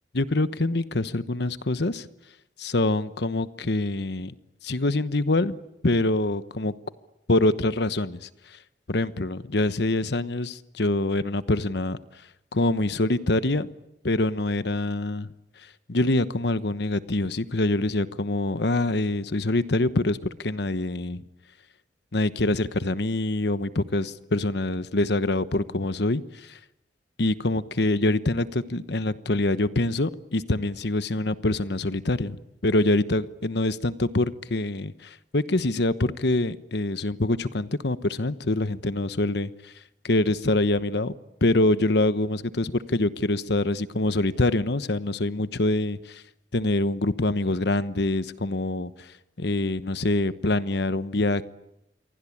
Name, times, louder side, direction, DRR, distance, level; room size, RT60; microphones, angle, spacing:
voice 1, 0.1-2.1 2.6-4.3 4.6-5.6 5.8-6.7 7.3-8.3 8.9-12.0 12.5-13.7 14.0-15.3 15.9-21.2 22.1-26.6 27.2-32.4 32.6-39.7 40.0-41.1 41.4-46.2 46.5-49.1 49.4-51.4, left 2 dB, 65° left, 1.1 m, -25 dB
28.0 x 23.5 x 8.6 m
head